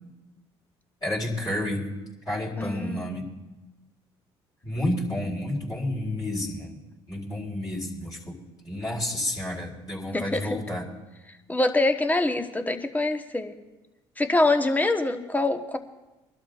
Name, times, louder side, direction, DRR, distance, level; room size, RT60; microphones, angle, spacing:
voice 1, 1.0-1.9 2.3-3.3 4.6-6.8 7.1-8.4 8.6-10.8, left 1 dB, 30° left, -5 dB, 4.2 m, -30 dB
voice 2, 2.6-3.2 10.1-10.6 11.5-13.6 14.2-15.8, left 2 dB, 15° left, 7 dB, 1.2 m, -25 dB
24.0 x 12.0 x 2.5 m, 1.1 s
hypercardioid pair, 60°, 13 cm